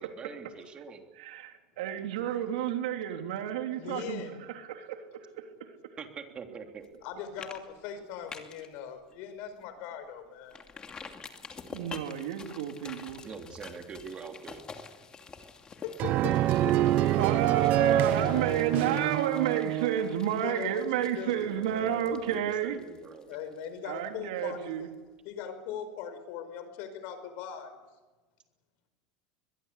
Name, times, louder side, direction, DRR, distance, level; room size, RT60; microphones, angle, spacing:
voice 1, 0.0-1.0 6.0-6.9 13.2-14.6 21.4-23.4, right 5 dB, 25° right, 4 dB, 3.3 m, -43 dB
voice 2, 1.2-4.2 4.5-5.5 11.7-13.2 17.1-22.8 23.8-24.9, right 10 dB, 85° right, 5 dB, 3.4 m, -31 dB
voice 3, 3.8-4.4 7.0-10.6 15.8-16.4 16.6-16.8 17.2-19.1 20.4-21.4 23.3-24.9 25.3-27.8, left 8 dB, 60° left, 10 dB, 5.2 m, -40 dB
sound 1, 6.8-7.1 7.4-7.6 7.9-8.7 9.1-9.2 9.6-9.7 10.5-24.1 24.4-24.5, left 5 dB, 20° left, 2.6 m, -48 dB
sound 2, 16.0-20.2, right 13 dB, 45° right, 0.8 m, -26 dB
22.0 x 22.0 x 8.4 m, 1.2 s
supercardioid pair, 135°, 4 cm